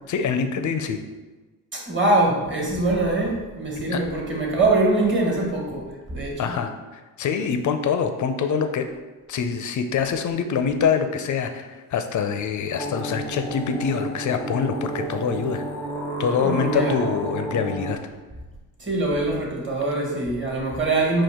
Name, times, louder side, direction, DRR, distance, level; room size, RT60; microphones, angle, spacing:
voice 1, 0.1-1.0 3.9-4.0 6.4-8.9 9.3-15.6 16.2-18.0, left 6 dB, 45° left, 7 dB, 0.5 m, -25 dB
voice 2, 1.7-6.5 16.4-17.0 18.8-21.2, right 2 dB, 30° right, -2 dB, 1.4 m, -23 dB
sound 1, 12.8-18.0, right 1 dB, 5° left, 0.7 m, -31 dB
4.4 x 2.5 x 3.6 m, 1.2 s
supercardioid pair, 60°, 41 cm